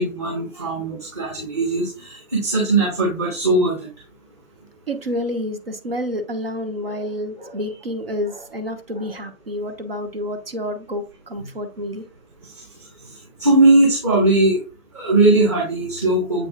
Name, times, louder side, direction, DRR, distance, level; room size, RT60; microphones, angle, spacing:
voice 1, 0.0-3.9 13.4-14.6 14.9-16.5, right 2 dB, 20° right, -3 dB, 1.7 m, -19 dB
voice 2, 4.9-12.0, equal, 45° right, 6 dB, 1.2 m, -29 dB
7.9 x 5.9 x 2.3 m, 0.31 s
figure-of-eight pair, 155°, 41 cm